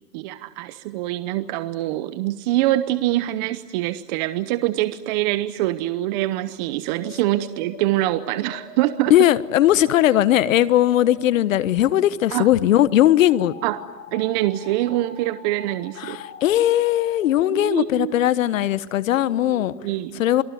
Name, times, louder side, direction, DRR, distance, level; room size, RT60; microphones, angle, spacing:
voice 1, 0.1-9.1 12.3-12.5 13.6-13.8 14.1-16.2 17.5-18.1 19.8-20.2, right 15 dB, 30° right, 12 dB, 0.8 m, -24 dB
sound 1, 6.6-19.9, left 5 dB, 25° left, 5.1 m, -44 dB
voice 2, 9.1-13.5 16.0-19.7 20.2-20.4, left 13 dB, 55° left, 16 dB, 1.3 m, -18 dB
28.5 x 22.0 x 9.4 m, 1.2 s
hypercardioid pair, 150°, 47 cm